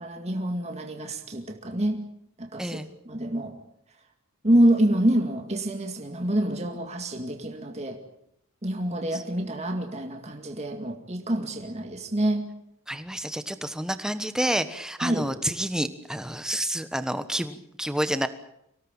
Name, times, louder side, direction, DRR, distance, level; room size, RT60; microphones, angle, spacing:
voice 1, 0.0-2.0 2.4-2.8 3.1-3.5 4.4-8.0 8.6-12.5 15.0-15.3, right 1 dB, 30° right, 4 dB, 2.2 m, -26 dB
voice 2, 12.9-18.3, equal, 5° right, 10 dB, 1.3 m, -29 dB
25.0 x 17.5 x 8.9 m, 0.77 s
head